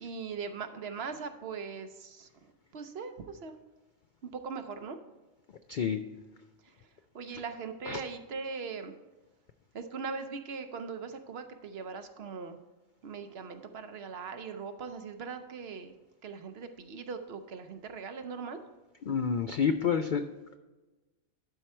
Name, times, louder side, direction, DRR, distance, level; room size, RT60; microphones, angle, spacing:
voice 1, 0.0-3.6 4.2-5.0 6.8-6.9 7.1-8.9 9.7-12.6 13.0-15.9 16.2-18.6, right 5 dB, 60° right, 8 dB, 0.8 m, -40 dB
voice 2, 5.7-6.0 7.3-7.4 7.9-8.0 19.1-20.2, left 6 dB, 70° left, 8 dB, 0.4 m, -28 dB
12.0 x 4.6 x 4.3 m, 1.2 s
omnidirectional pair, 1.4 m